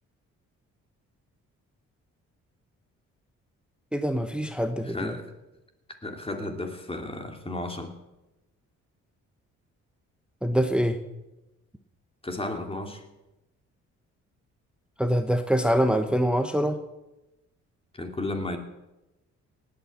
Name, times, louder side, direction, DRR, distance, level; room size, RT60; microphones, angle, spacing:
voice 1, 3.9-5.2 10.4-11.0 15.0-16.8, equal, 5° right, 8 dB, 1.1 m, -24 dB
voice 2, 4.8-5.2 6.0-7.9 12.2-13.0 18.0-18.6, left 2 dB, 20° left, 5 dB, 2.8 m, -33 dB
18.0 x 8.8 x 8.5 m, 0.99 s
cardioid pair, 90°, 30 cm